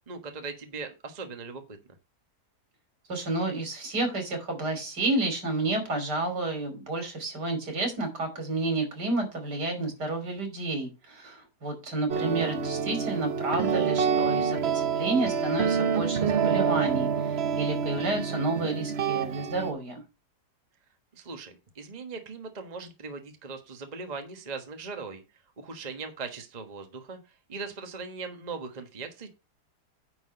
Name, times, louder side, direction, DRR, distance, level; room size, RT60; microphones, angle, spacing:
voice 1, 0.1-1.8 21.1-25.2 25.6-27.2 27.5-29.3, right 4 dB, 25° right, 6 dB, 1.2 m, -39 dB
voice 2, 3.1-20.0, right 2 dB, 75° right, 4 dB, 3.6 m, -30 dB
sound 1, 12.1-19.7, right 6 dB, 50° right, 0.8 m, -27 dB
9.8 x 3.9 x 6.5 m, 0.27 s
omnidirectional pair, 1.8 m